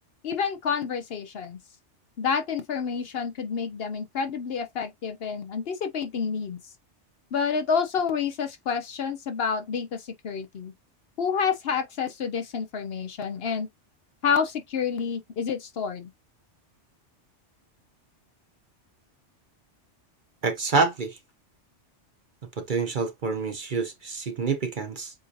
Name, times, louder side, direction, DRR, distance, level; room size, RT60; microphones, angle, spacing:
voice 1, 0.2-1.6 2.2-6.6 7.3-10.7 11.2-13.7 14.2-16.1, left 6 dB, 60° left, 0.8 m, -29 dB
voice 2, 20.4-21.2 22.7-25.1, right 4 dB, 45° right, 0.8 m, -27 dB
7.6 x 2.7 x 2.5 m
omnidirectional pair, 1.2 m